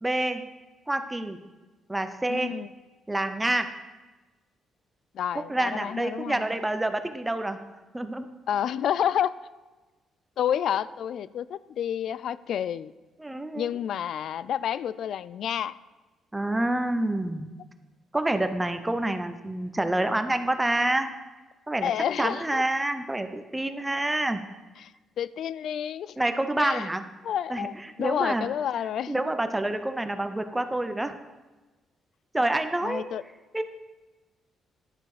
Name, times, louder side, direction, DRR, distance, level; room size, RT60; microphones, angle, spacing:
voice 1, 0.0-0.4 0.9-1.4 1.9-2.5 3.1-3.7 5.3-7.6 7.9-8.3 13.2-13.7 16.3-17.5 18.1-21.1 21.7-21.9 22.2-24.4 26.2-27.1 27.5-27.7 28.0-28.5 29.1-31.1 32.3-33.1 33.5-33.6, right 1 dB, 10° right, 9 dB, 0.8 m, -27 dB
voice 2, 2.3-2.7 5.1-6.4 8.5-9.3 10.4-12.9 13.5-15.7 21.8-22.6 24.8-24.9 25.2-26.2 26.6-26.9 27.2-29.2 32.8-33.2, left 9 dB, 70° left, 18 dB, 0.3 m, -29 dB
11.0 x 6.7 x 4.9 m, 1.2 s
cardioid pair, 90°, 0 cm